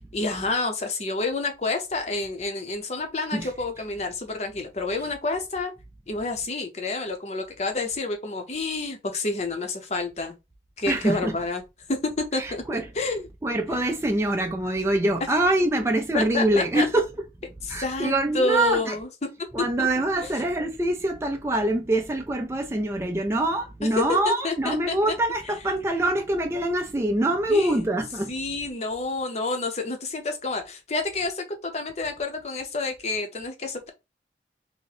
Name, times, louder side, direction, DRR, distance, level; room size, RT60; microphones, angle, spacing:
voice 1, 0.1-5.7 6.1-10.4 10.8-11.6 11.9-13.3 16.1-16.9 17.6-19.1 19.8-19.9 20.2-20.3 24.0-24.1 24.4-24.9 27.5-27.8 28.3-33.9, left 3 dB, 40° left, 0.7 m, -29 dB
voice 2, 10.9-11.4 12.3-12.9 13.4-17.1 17.7-19.0 19.5-28.3, right 1 dB, 15° right, 0.4 m, -24 dB
2.8 x 2.1 x 4.0 m
head